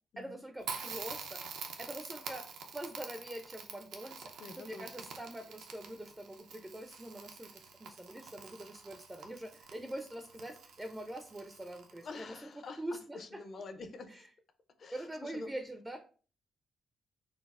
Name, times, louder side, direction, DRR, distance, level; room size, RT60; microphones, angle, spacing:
voice 1, 0.2-1.4 1.8-2.4 2.7-13.4 14.1-14.2 14.9-16.0, right 1 dB, 15° right, 6 dB, 0.4 m, -44 dB
Crackle, 0.6-12.2, right 5 dB, 85° right, 0.5 m, -47 dB
voice 2, 4.4-5.1 12.0-12.8 13.1-14.3 14.8-15.5, left 3 dB, 55° left, 8 dB, 0.5 m, -47 dB
3.9 x 2.0 x 2.4 m, 0.40 s
cardioid pair, 75°, 0 cm